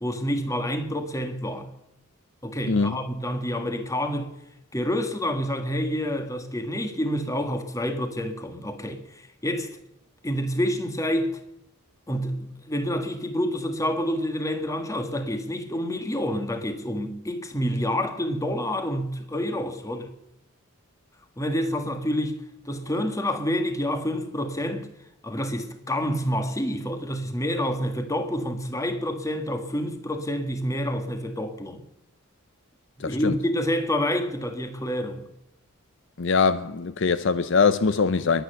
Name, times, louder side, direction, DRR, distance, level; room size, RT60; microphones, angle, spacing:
voice 1, 0.0-1.7 2.4-4.3 4.7-9.8 10.2-11.4 12.1-20.1 21.4-22.4 22.7-24.9 25.2-31.8 33.0-35.3, equal, 15° left, 1.7 m, -28 dB
voice 2, 2.7-3.0 33.0-33.4 36.2-38.4, left 5 dB, 55° left, 0.6 m, -22 dB
22.0 x 9.1 x 6.8 m
head